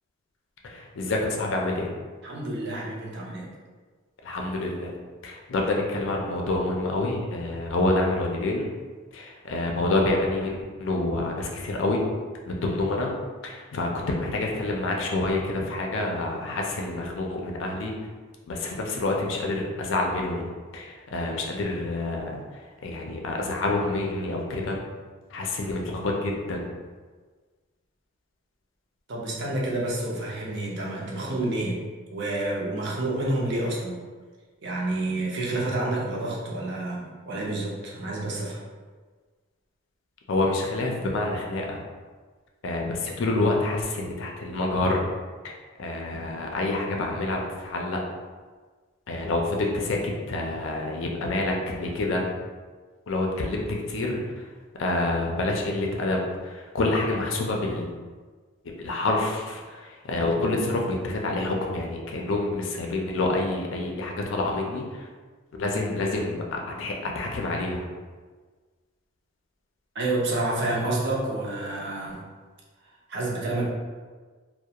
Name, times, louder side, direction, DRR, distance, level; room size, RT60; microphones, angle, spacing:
voice 1, 0.6-1.9 4.2-4.9 5.2-8.7 9.1-12.1 12.5-13.1 13.4-17.9 18.5-20.5 20.7-24.8 25.3-26.7 40.3-41.8 42.6-45.0 45.8-48.0 49.1-52.2 53.1-54.2 54.8-57.9 58.6-65.1 65.6-67.8, left 2 dB, 60° left, 0 dB, 0.4 m, -27 dB
voice 2, 2.2-3.5 29.1-31.8 32.1-34.0 34.6-38.6 69.9-72.2 73.1-73.7, right 2 dB, 55° right, -4 dB, 0.6 m, -29 dB
2.3 x 2.1 x 2.8 m, 1.4 s
head